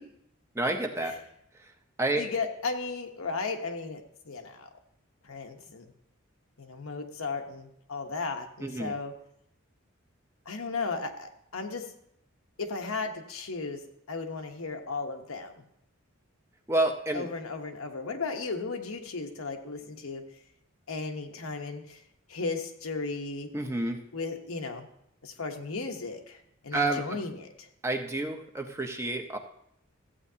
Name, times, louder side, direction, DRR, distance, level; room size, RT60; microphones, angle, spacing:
voice 1, 0.5-1.2 2.0-2.2 8.6-8.9 16.7-17.3 23.5-24.0 26.7-27.0 27.8-29.4, right 2 dB, 15° right, 4 dB, 0.7 m, -29 dB
voice 2, 2.2-4.7 5.3-5.9 6.6-9.1 10.5-11.9 12.6-13.8 14.1-15.5 17.1-20.2 20.9-22.0 22.3-23.5 24.1-24.9 25.2-26.4 26.6-27.7, left 4 dB, 90° left, 4 dB, 1.1 m, -35 dB
14.0 x 8.3 x 2.8 m, 0.74 s
head